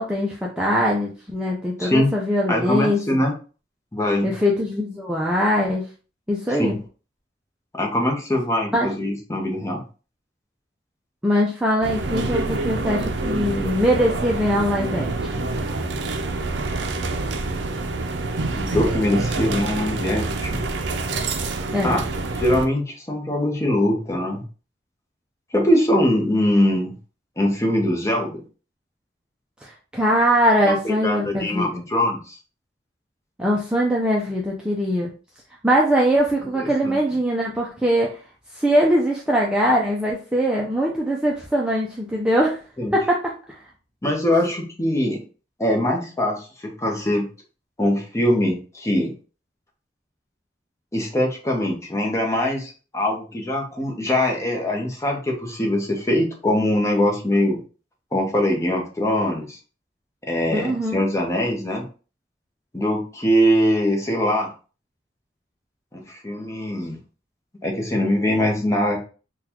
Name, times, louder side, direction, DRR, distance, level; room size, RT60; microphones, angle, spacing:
voice 1, 0.0-3.2 4.2-5.8 6.3-6.8 8.7-8.9 11.2-15.3 21.7-22.0 29.6-31.8 33.4-35.1 35.6-38.2 38.5-42.6 42.9-43.3 60.5-61.0, equal, 5° right, -3 dB, 0.5 m, -22 dB
voice 2, 1.8-2.1 2.5-3.3 3.9-4.3 6.6-6.7 7.7-9.8 18.3-20.6 21.8-22.0 22.4-24.4 25.5-26.9 27.4-28.4 30.6-32.4 36.8-36.9 42.8-42.9 44.0-45.2 45.6-47.3 47.8-49.1 50.9-57.6 58.1-59.6 60.3-61.8 62.7-64.5 65.9-67.0 67.6-69.0, left 1 dB, 15° left, 1 dB, 0.8 m, -22 dB
sound 1, 11.8-22.7, right 3 dB, 70° right, 0.5 m, -26 dB
3.9 x 2.3 x 2.9 m, 0.36 s
head